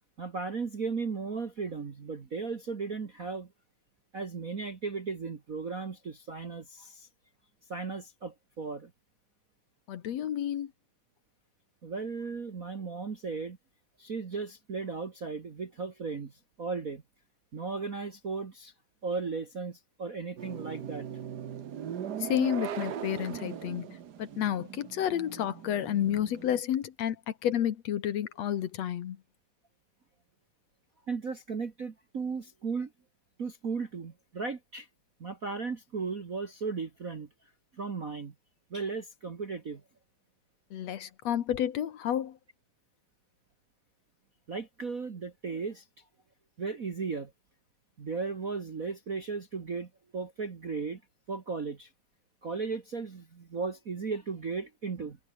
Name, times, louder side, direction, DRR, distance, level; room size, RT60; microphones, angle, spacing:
voice 1, 0.2-3.5 4.1-7.1 7.7-8.9 11.8-13.6 14.0-17.0 17.5-18.7 19.0-21.1 31.1-32.9 33.4-34.9 35.2-37.3 37.7-38.3 38.7-39.8 44.5-45.9 46.6-47.3 48.0-51.0 51.3-51.9 52.4-55.2, right 4 dB, 40° right, 1.3 m, -36 dB
voice 2, 9.9-10.7 22.2-23.9 24.2-29.2 40.7-42.4, left 10 dB, 65° left, 2.3 m, -30 dB
sound 1, 20.4-26.6, right 9 dB, 65° right, 1.0 m, -39 dB
omnidirectional pair, 3.5 m